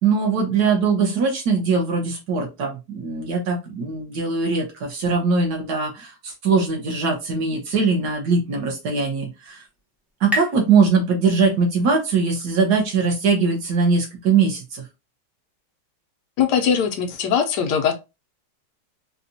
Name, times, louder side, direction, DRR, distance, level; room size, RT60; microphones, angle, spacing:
voice 1, 0.0-9.6 10.2-14.8, right 4 dB, 65° right, 1.6 m, -21 dB
sound 1, 8.9-12.2, equal, ahead, 0.4 m, -34 dB
voice 2, 16.4-17.9, left 7 dB, 75° left, 1.2 m, -20 dB
4.1 x 2.3 x 2.6 m
omnidirectional pair, 1.9 m